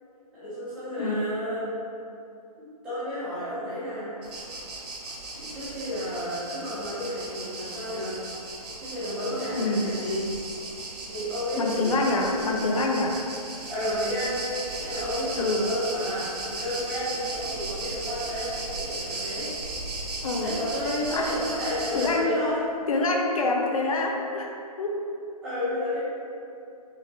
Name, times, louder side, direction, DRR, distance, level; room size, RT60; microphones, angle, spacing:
voice 1, 0.3-1.7 2.6-4.1 5.4-8.1 8.8-10.3 11.1-12.1 13.7-14.4 14.8-19.5 20.4-22.6 25.4-26.0, left 1 dB, 5° right, -14 dB, 0.4 m, -31 dB
voice 2, 1.0-1.3 9.6-9.9 11.6-13.2 15.4-15.7 20.2-20.6 21.1-21.3 21.9-22.4 22.9-25.0, left 2 dB, 60° left, 2 dB, 0.5 m, -26 dB
sound 1, 4.2-22.2, right 2 dB, 80° right, 0.8 m, -36 dB
4.5 x 2.8 x 2.7 m, 2.7 s
hypercardioid pair, 165°, 20 cm